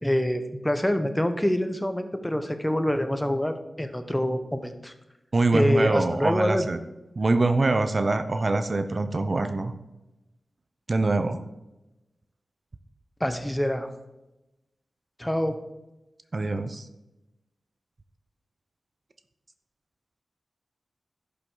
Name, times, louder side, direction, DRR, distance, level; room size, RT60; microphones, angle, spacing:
voice 1, 0.0-4.9 5.5-6.7 13.2-13.9 15.2-15.6, left 1 dB, 10° left, 8 dB, 1.1 m, -26 dB
voice 2, 5.3-6.8 7.1-9.7 10.9-11.4 16.3-16.9, right 2 dB, 55° right, 9 dB, 0.7 m, -24 dB
11.5 x 6.8 x 4.0 m, 0.99 s
cardioid pair, 40°, 0 cm